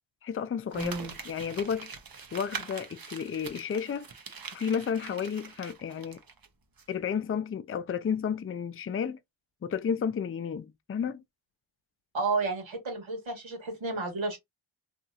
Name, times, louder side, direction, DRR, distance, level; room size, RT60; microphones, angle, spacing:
voice 1, 0.2-0.9 1.2-1.9 2.3-4.1 4.5-6.2 6.9-9.2 9.6-11.2, left 7 dB, 30° left, 0.4 m, -32 dB
Crumpling crinkling, 0.7-6.5 6.8-6.9, right 5 dB, 45° right, 0.8 m, -43 dB
voice 2, 0.7-1.1 12.1-14.4, right 3 dB, 70° right, 1.5 m, -31 dB
2.8 x 2.6 x 2.4 m
cardioid pair, 45°, 48 cm